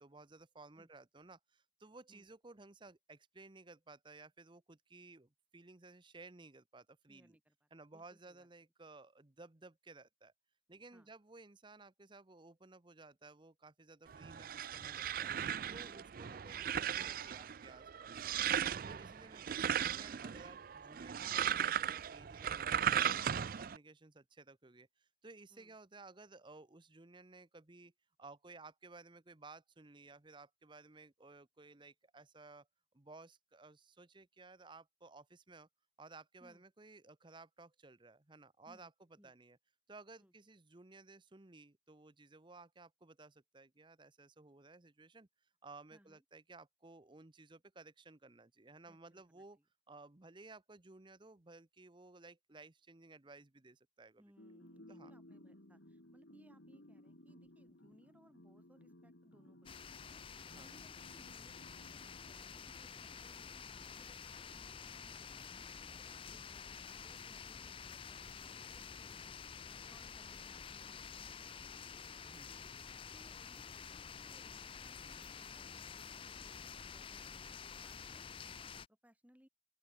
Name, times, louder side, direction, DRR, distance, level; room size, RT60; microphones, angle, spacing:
voice 1, 0.0-7.4 7.7-10.3 10.7-15.3 15.7-18.3 18.8-27.9 28.2-32.7 32.9-35.7 36.0-38.9 39.2-39.6 39.9-45.3 45.6-49.6 49.9-54.2 54.9-55.1 60.5-60.8 66.1-66.4 72.2-72.7, right 3 dB, 25° right, 0.9 m, -57 dB
voice 2, 7.1-8.5 10.9-11.1 15.9-16.1 25.5-25.8 36.4-36.6 38.7-38.9 39.2-39.3 40.2-40.3 45.9-46.2 48.8-49.6 54.2-71.8 73.1-79.5, equal, 10° right, 3.9 m, -68 dB
sound 1, 14.1-23.8, right 9 dB, 50° right, 0.4 m, -37 dB
sound 2, 54.4-63.1, left 1 dB, 85° left, 3.5 m, -60 dB
sound 3, 59.7-78.9, left 6 dB, 30° left, 0.5 m, -50 dB
open air
head